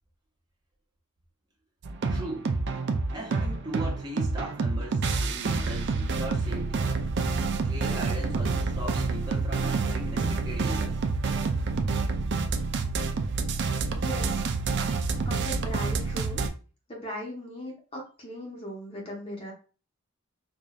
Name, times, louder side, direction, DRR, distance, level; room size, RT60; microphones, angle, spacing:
sound 1, 1.8-16.5, right 4 dB, 50° right, 0.4 m, -28 dB
voice 1, 2.1-2.5 3.1-6.8 7.6-11.0, right 1 dB, 20° right, 1.0 m, -38 dB
voice 2, 14.0-14.3 15.2-16.4 16.9-19.5, equal, 25° left, 1.0 m, -38 dB
4.9 x 2.6 x 2.4 m
head